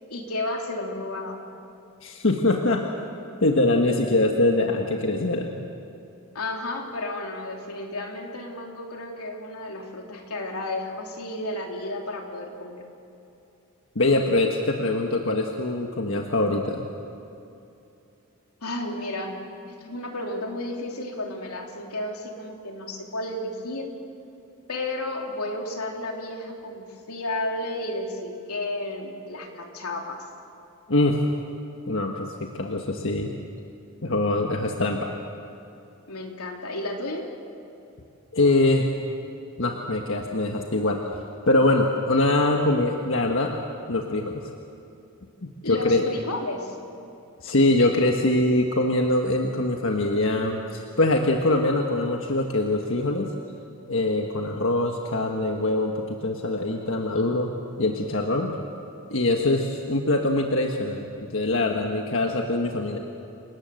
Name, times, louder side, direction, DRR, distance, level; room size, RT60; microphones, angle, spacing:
voice 1, 0.1-1.4 6.3-12.8 18.6-19.4 19.7-23.9 24.7-30.2 36.1-37.3 45.6-46.8, left 1 dB, 90° left, 1 dB, 3.4 m, -32 dB
voice 2, 2.0-2.9 3.4-5.6 13.9-16.9 30.9-31.2 31.9-33.3 34.0-35.1 38.3-38.9 39.6-41.0 41.5-43.5 43.9-44.5 45.4-46.0 47.4-53.3 53.9-57.5 57.8-58.5 59.1-63.0, left 2 dB, 60° left, 2 dB, 1.5 m, -23 dB
28.5 x 19.0 x 7.9 m, 2.7 s
head